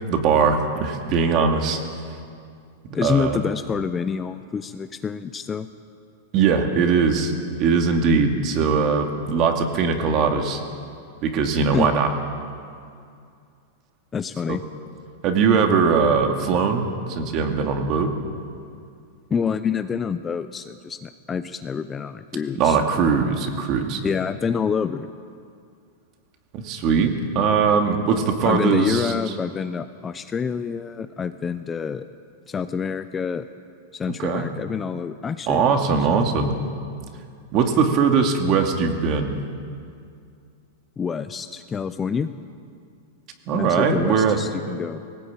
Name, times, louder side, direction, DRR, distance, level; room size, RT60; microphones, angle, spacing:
voice 1, 0.1-1.8 2.8-3.4 6.3-7.3 7.6-10.6 11.2-12.1 14.5-14.6 15.2-18.1 22.6-24.0 26.5-29.1 34.2-34.5 35.5-36.6 37.5-39.4 43.5-44.4, right 5 dB, 35° right, 4 dB, 2.4 m, -20 dB
voice 2, 2.9-5.7 11.7-11.9 14.1-14.6 19.3-22.8 24.0-25.1 28.4-32.1 32.5-33.5 33.9-35.7 36.1-36.3 41.0-42.3 43.5-45.0, left 6 dB, 15° left, 10 dB, 0.6 m, -27 dB
19.5 x 18.0 x 8.8 m, 2.3 s
supercardioid pair, 150°, 0 cm